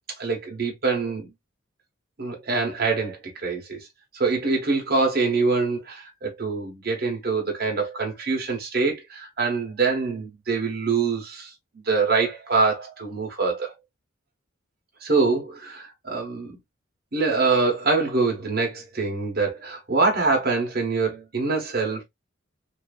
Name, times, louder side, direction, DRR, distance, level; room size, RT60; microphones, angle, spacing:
voice 1, 0.2-1.3 2.2-3.8 4.1-13.7 15.0-16.6 17.1-22.0, right 4 dB, 50° right, 1.1 m, -24 dB
2.7 x 2.6 x 2.3 m
head